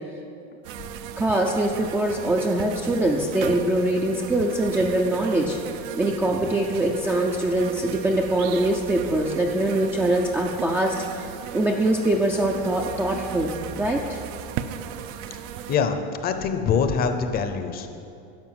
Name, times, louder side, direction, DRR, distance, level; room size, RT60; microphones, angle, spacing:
Australian Blowfly, 0.6-15.8, right 9 dB, 65° right, 0.6 m, -36 dB
voice 1, 1.2-5.6 6.0-11.3 11.5-14.2, right 1 dB, 5° right, -1 dB, 0.4 m, -23 dB
voice 2, 15.7-17.9, left 6 dB, 30° left, 8 dB, 0.7 m, -24 dB
12.0 x 5.5 x 7.8 m, 2.5 s
cardioid pair, 160°, 32 cm